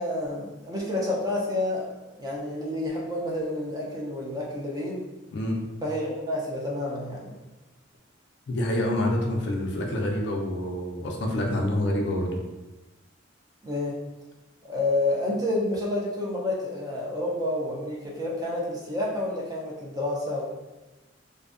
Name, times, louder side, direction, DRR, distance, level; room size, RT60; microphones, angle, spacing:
voice 1, 0.0-5.0 5.8-7.4 13.6-14.0 14.6-20.4, left 1 dB, 20° right, -4 dB, 0.4 m, -29 dB
voice 2, 8.5-12.4, left 1 dB, 60° left, 0 dB, 0.4 m, -27 dB
2.5 x 2.2 x 2.4 m, 1.1 s
head